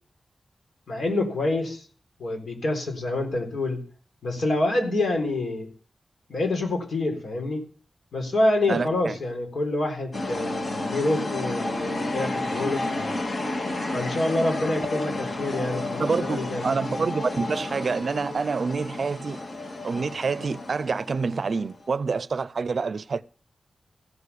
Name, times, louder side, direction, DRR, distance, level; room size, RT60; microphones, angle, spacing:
voice 1, 0.9-1.8 2.2-3.8 4.2-5.7 6.3-7.6 8.1-13.1 13.9-16.7, left 2 dB, 80° left, 3.9 m, -27 dB
voice 2, 8.7-9.1 16.0-19.4 19.8-23.2, right 4 dB, 60° right, 0.5 m, -27 dB
sound 1, 10.1-21.9, left 2 dB, 55° left, 2.2 m, -31 dB
15.5 x 6.7 x 6.9 m
wide cardioid pair, 110°, 0 cm